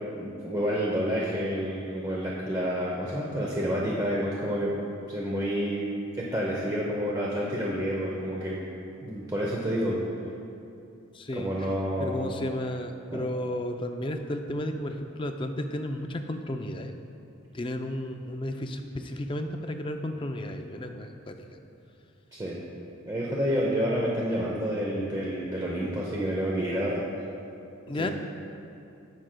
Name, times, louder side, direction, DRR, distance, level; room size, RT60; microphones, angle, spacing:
voice 1, 0.2-4.7 5.1-5.9 6.2-8.6 9.0-10.0 11.4-12.2 13.1-13.2 22.3-22.6 23.1-27.0 28.0-28.1, equal, 15° right, -4 dB, 0.7 m, -29 dB
voice 2, 11.1-11.7 12.0-16.9 17.5-21.5 27.9-28.1, left 1 dB, 25° left, 5 dB, 0.4 m, -33 dB
18.5 x 6.2 x 2.2 m, 2.6 s
head